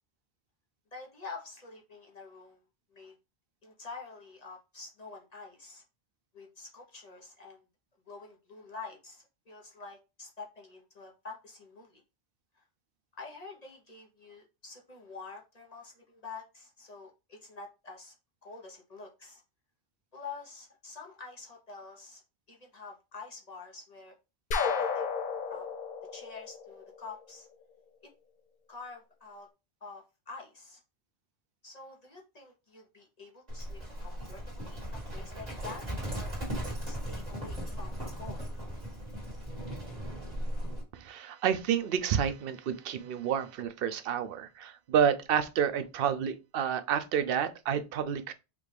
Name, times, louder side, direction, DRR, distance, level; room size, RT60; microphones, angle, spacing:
voice 1, 0.9-2.6 2.9-3.1 3.6-5.8 6.3-7.6 8.1-12.0 12.5-12.6 13.2-18.1 18.4-19.4 20.1-22.2 22.5-24.1 24.6-25.1 25.5-25.7 26.1-27.5 28.7-29.5 29.8-30.8 31.6-35.8 36.1-36.4 36.8-38.4, left 4 dB, 40° left, 1.0 m, -47 dB
sound 1, 24.5-27.3, left 5 dB, 60° left, 0.7 m, -33 dB
Livestock farm animals working animals, 33.5-40.8, equal, 40° right, 1.9 m, -37 dB
voice 2, 40.9-48.3, right 8 dB, 70° right, 0.7 m, -29 dB
5.0 x 2.4 x 3.3 m
omnidirectional pair, 1.0 m